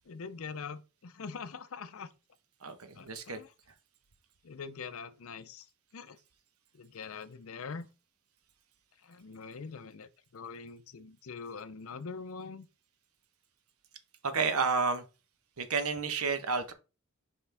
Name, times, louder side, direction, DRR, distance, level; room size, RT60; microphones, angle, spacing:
voice 1, 0.1-2.1 3.0-3.5 4.4-5.6 5.9-6.2 6.7-7.9 9.1-12.7, left 5 dB, 70° left, 0.6 m, -43 dB
voice 2, 2.6-3.4 14.2-15.0 15.6-16.7, right 4 dB, 85° right, 1.0 m, -31 dB
5.7 x 5.1 x 3.4 m
head